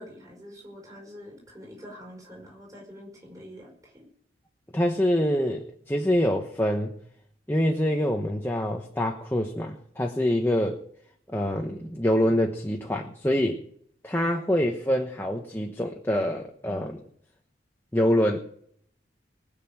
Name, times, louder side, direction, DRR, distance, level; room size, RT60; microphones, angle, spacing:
voice 1, 0.0-4.1, equal, 20° right, -1 dB, 5.3 m, -45 dB
voice 2, 4.7-7.0 7.5-10.8 11.3-13.7 14.0-17.0 17.9-18.4, equal, 10° left, 2 dB, 1.1 m, -25 dB
20.0 x 6.8 x 8.8 m, 0.65 s
head